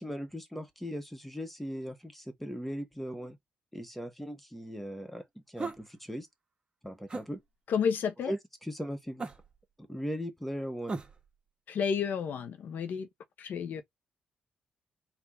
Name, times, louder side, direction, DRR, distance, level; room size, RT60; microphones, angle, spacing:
voice 1, 0.0-3.4 3.7-6.3 6.8-7.4 8.3-9.3 9.9-11.0 13.8-13.9, equal, 5° left, 1.5 m, -38 dB
sound 1, 5.6-5.9 7.1-7.3 9.2-9.6 10.9-11.3, right 3 dB, 30° right, 1.6 m, -37 dB
voice 2, 7.7-8.3 11.7-13.1 13.4-13.8, left 6 dB, 75° left, 1.0 m, -31 dB
4.4 x 2.7 x 3.9 m
cardioid pair, 75°, 3 cm